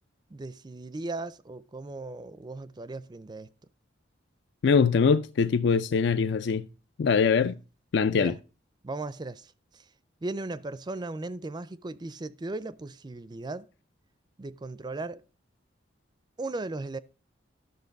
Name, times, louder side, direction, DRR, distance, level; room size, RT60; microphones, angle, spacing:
voice 1, 0.3-3.5 8.1-8.4 8.8-9.9 10.2-13.7 14.4-15.2 16.4-17.0, right 2 dB, 25° right, 0.4 m, -37 dB
voice 2, 4.6-6.7 7.0-7.6 7.9-8.3, left 5 dB, 65° left, 0.4 m, -23 dB
12.0 x 6.5 x 5.2 m
head